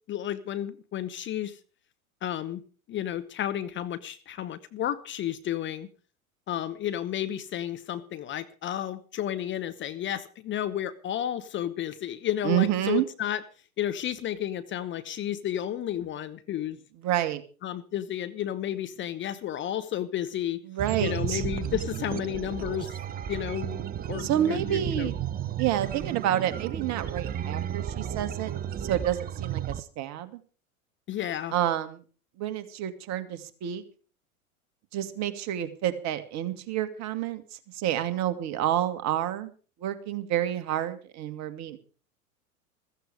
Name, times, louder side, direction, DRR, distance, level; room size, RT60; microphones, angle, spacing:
voice 1, 0.1-1.6 2.2-2.6 2.9-5.9 6.5-13.4 13.8-16.8 17.6-20.6 21.0-23.0 23.3-25.1 31.1-31.5, left 11 dB, 25° left, 12 dB, 0.9 m, -32 dB
voice 2, 12.4-13.1 17.0-17.4 20.7-21.4 24.2-25.1 25.6-28.5 28.8-30.4 31.5-32.0 32.4-33.8 34.9-37.4 37.7-39.5 39.8-41.8, right 11 dB, 40° right, 9 dB, 2.1 m, -29 dB
sound 1, 20.8-29.8, right 10 dB, 20° right, 0.7 m, -33 dB
15.0 x 15.0 x 4.9 m, 0.38 s
figure-of-eight pair, 90°, 43 cm